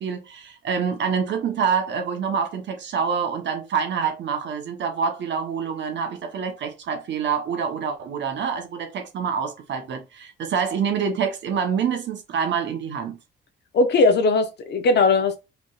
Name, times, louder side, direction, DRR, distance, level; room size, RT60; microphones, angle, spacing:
voice 1, 0.0-13.2, right 6 dB, 65° right, 1.0 m, -26 dB
voice 2, 13.7-15.4, left 3 dB, 60° left, 0.9 m, -19 dB
5.0 x 3.1 x 2.4 m
cardioid pair, 90°, 20 cm